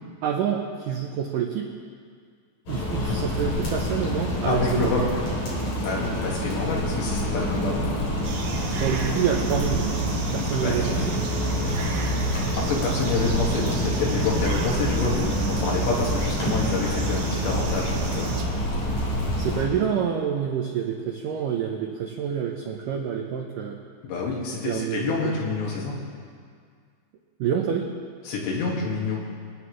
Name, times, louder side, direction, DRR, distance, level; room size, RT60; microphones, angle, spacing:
voice 1, 0.2-1.7 2.7-4.9 8.8-10.0 10.3-11.2 18.9-19.0 19.4-23.8 24.7-25.3 27.4-27.9, right 8 dB, 90° right, 0 dB, 1.9 m, -27 dB
sound 1, 2.7-19.6, equal, 45° left, 4.3 m, -27 dB
voice 2, 4.5-5.1 5.8-7.8 10.6-11.0 12.6-18.3 24.0-26.0 28.3-29.2, left 3 dB, 75° left, -3 dB, 4.0 m, -27 dB
sound 2, 8.2-18.4, right 4 dB, 70° right, 2.7 m, -33 dB
25.0 x 10.0 x 3.2 m, 2.1 s
omnidirectional pair, 5.0 m